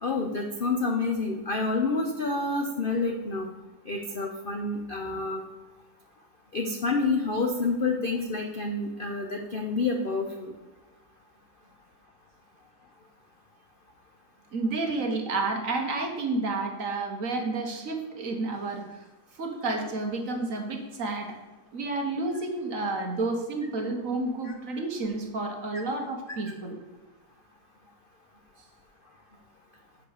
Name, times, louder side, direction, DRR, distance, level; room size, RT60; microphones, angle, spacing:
voice 1, 0.0-3.5 3.9-5.4 6.5-10.5 24.4-24.5, left 3 dB, 70° left, 3 dB, 0.5 m, -28 dB
voice 2, 14.5-19.0 19.4-21.4 21.7-26.8, right 3 dB, 50° right, 3 dB, 1.4 m, -30 dB
7.5 x 4.9 x 6.5 m, 1.1 s
omnidirectional pair, 2.0 m